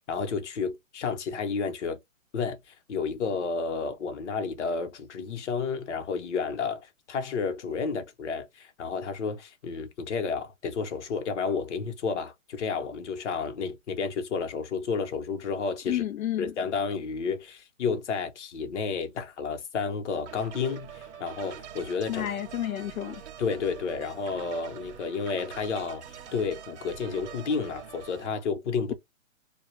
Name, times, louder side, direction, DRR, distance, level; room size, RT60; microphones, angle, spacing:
voice 1, 0.1-2.0 2.3-16.0 16.4-22.3 23.4-26.0 26.3-28.9, left 5 dB, 60° left, 1.0 m, -31 dB
voice 2, 15.9-16.5 22.1-23.2, left 12 dB, 90° left, 0.5 m, -31 dB
sound 1, 20.3-28.3, right 8 dB, 55° right, 0.8 m, -44 dB
2.3 x 2.2 x 3.1 m
hypercardioid pair, 155°, 40 cm